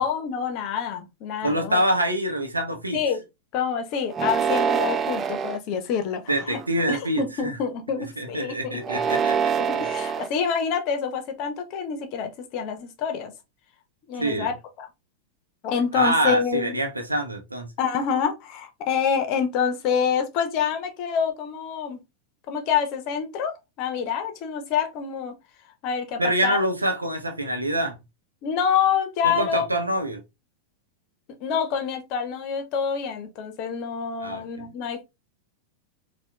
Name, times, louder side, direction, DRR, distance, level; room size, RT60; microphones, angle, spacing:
voice 1, 0.0-1.8 2.9-3.2 3.5-6.6 6.9-8.8 9.6-13.3 14.1-14.9 15.6-16.8 17.8-22.0 22.5-25.4 25.8-26.6 28.4-29.7 31.4-35.0, left 7 dB, 40° left, 0.7 m, -27 dB
voice 2, 1.4-3.0 6.3-7.6 8.2-9.5 9.8-9.9 14.2-14.5 15.9-17.7 26.2-27.9 29.2-30.2 34.2-34.7, right 1 dB, 80° right, 0.7 m, -25 dB
sound 1, 4.1-5.6 6.3-6.8 8.8-10.3, right 7 dB, 25° right, 0.3 m, -25 dB
4.2 x 2.3 x 2.2 m
figure-of-eight pair, 90°, 0 cm